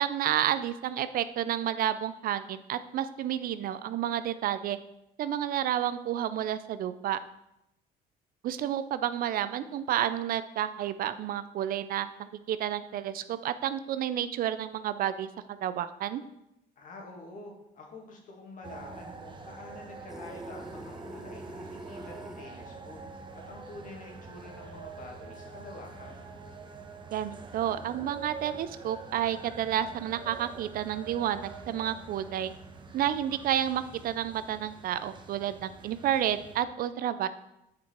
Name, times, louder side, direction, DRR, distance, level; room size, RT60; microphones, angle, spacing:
voice 1, 0.0-4.8 5.2-7.2 8.4-16.2 27.1-32.5 32.9-37.3, right 11 dB, 60° right, 13 dB, 0.5 m, -30 dB
voice 2, 16.8-26.2, left 2 dB, 50° left, 0 dB, 2.0 m, -47 dB
sound 1, 18.6-36.6, right 4 dB, 30° right, 0.9 m, -46 dB
sound 2, 20.1-22.5, right 1 dB, 5° right, 0.4 m, -44 dB
8.3 x 4.7 x 4.4 m, 0.85 s
cardioid pair, 110°, 17 cm